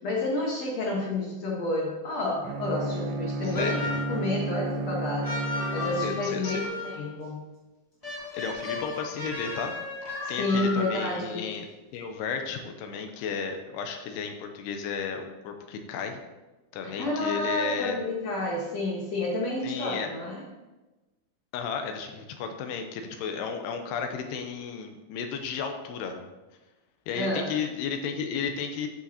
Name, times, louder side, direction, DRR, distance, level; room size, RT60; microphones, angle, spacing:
voice 1, 0.0-5.4 5.7-7.4 10.2-11.4 16.8-20.4 27.1-27.5, left 2 dB, 60° left, -3 dB, 1.8 m, -30 dB
Bowed string instrument, 2.4-6.6, right 2 dB, 80° right, 2.6 m, -32 dB
voice 2, 3.4-3.9 6.0-6.6 8.3-9.7 10.3-11.7 11.9-16.2 16.7-18.0 19.6-20.1 21.5-26.2 27.1-28.9, left 6 dB, 80° left, 5 dB, 2.7 m, -33 dB
sound 1, 3.5-4.2 5.2-7.1 8.0-11.2, left 2 dB, 25° left, 0.7 m, -35 dB
11.5 x 5.9 x 2.8 m, 1.1 s
omnidirectional pair, 4.8 m